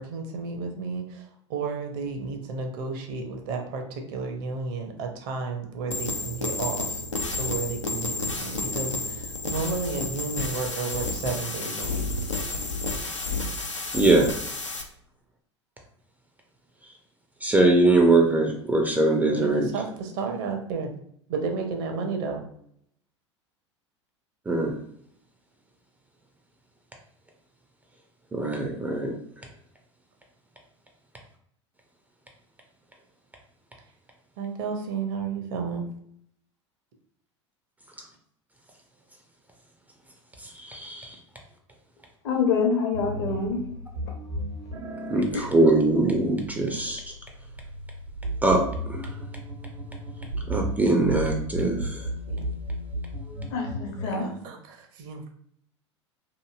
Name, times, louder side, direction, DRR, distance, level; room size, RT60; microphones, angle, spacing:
voice 1, 0.0-7.0 7.3-12.2 19.3-20.9 21.3-22.4 34.4-35.9 52.3-52.5 54.0-55.3, right 4 dB, 50° right, 4 dB, 0.6 m, -32 dB
sound 1, 5.9-14.8, left 3 dB, 85° left, 0.4 m, -31 dB
voice 2, 13.9-14.3 17.4-19.7 24.5-24.7 28.3-29.1 40.4-41.2 45.1-47.0 48.4-48.6 48.9-49.0 50.5-52.0, right 2 dB, 10° right, 2 dB, 0.4 m, -22 dB
voice 3, 42.2-43.6 45.3-45.5 53.5-54.3, left 5 dB, 55° left, 2 dB, 0.8 m, -26 dB
sound 2, 42.9-54.2, right 1 dB, 90° right, 1.3 m, -34 dB
2.9 x 2.5 x 2.4 m, 0.67 s
figure-of-eight pair, 80°, 15 cm